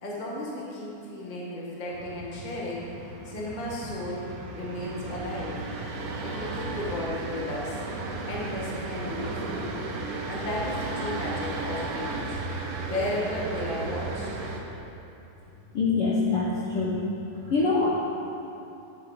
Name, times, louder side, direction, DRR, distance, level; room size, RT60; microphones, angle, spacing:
voice 1, 0.0-2.9 3.2-4.3 4.5-5.5 6.2-7.8 8.2-9.7 10.2-12.3 12.8-14.3, left 1 dB, 30° left, -5 dB, 0.8 m, -34 dB
sound 1, 1.9-14.6, right 3 dB, 80° right, 2.4 m, -34 dB
voice 2, 15.7-17.0 17.4-18.0, left 3 dB, 70° left, -4 dB, 1.4 m, -24 dB
10.5 x 5.6 x 6.5 m, 2.8 s
omnidirectional pair, 3.7 m